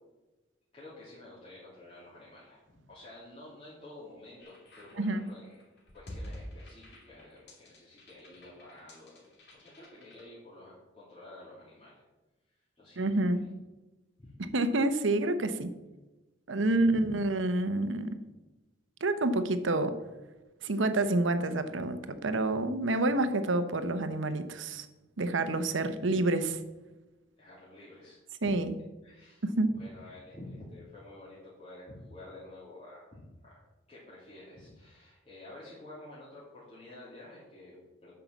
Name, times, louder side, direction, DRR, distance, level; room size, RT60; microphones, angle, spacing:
voice 1, 0.7-2.6 2.9-5.6 5.9-9.2 9.5-12.0 12.8-13.5 14.2-14.4 16.6-17.1 25.5-25.7 27.4-28.5 29.0-33.6 33.9-38.1, left 2 dB, 35° left, -9 dB, 2.8 m, -50 dB
sound 1, 4.4-10.2, equal, 60° left, 2.7 m, -48 dB
voice 2, 13.0-13.4 14.5-15.7 16.5-18.2 19.0-20.0 20.6-24.9 25.2-26.6 28.4-28.7 29.4-29.7, right 2 dB, 75° right, 10 dB, 0.9 m, -28 dB
9.1 x 5.8 x 7.1 m, 1.1 s
head